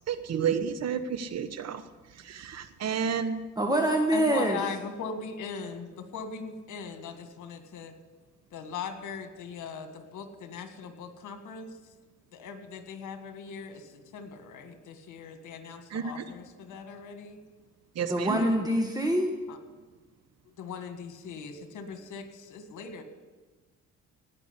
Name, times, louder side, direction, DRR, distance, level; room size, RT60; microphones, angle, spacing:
voice 1, 0.1-1.8 2.3-3.4 15.9-16.2 18.0-18.5, right 7 dB, 60° right, 11 dB, 1.1 m, -31 dB
voice 2, 3.6-4.6 18.0-19.3, right 1 dB, 10° right, 2 dB, 1.5 m, -25 dB
voice 3, 4.1-7.9 8.5-11.7 12.3-17.4 18.3-18.8 19.5-19.6 20.6-23.0, left 5 dB, 80° left, 7 dB, 1.9 m, -40 dB
17.5 x 6.0 x 9.8 m, 1.3 s
cardioid pair, 90°, 30 cm